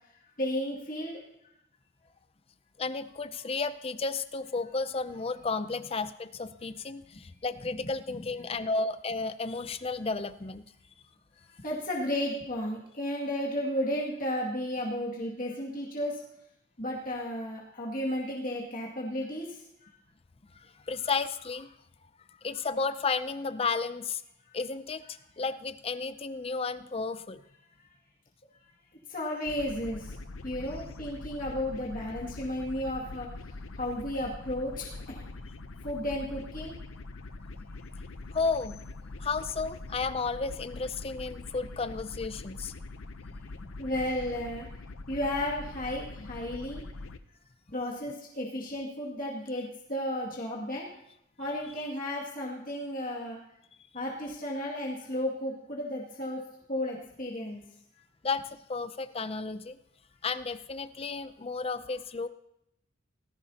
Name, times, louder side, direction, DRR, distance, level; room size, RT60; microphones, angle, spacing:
voice 1, 0.4-1.2 8.1-8.3 11.6-16.2 16.8-19.6 29.1-30.2 30.4-35.3 35.8-36.7 43.4-44.7 45.1-46.8 47.7-50.9 51.4-53.4 53.9-56.4 56.7-57.6, left 1 dB, 45° left, -4 dB, 2.2 m, -33 dB
voice 2, 2.8-10.6 20.5-21.7 22.4-24.2 24.5-27.4 38.3-38.8 39.2-42.7 58.2-59.8 60.2-62.3, left 4 dB, 30° left, 13 dB, 0.5 m, -33 dB
sound 1, 29.5-47.2, left 2 dB, 85° left, 0.7 m, -43 dB
18.0 x 14.5 x 2.9 m, 0.79 s
head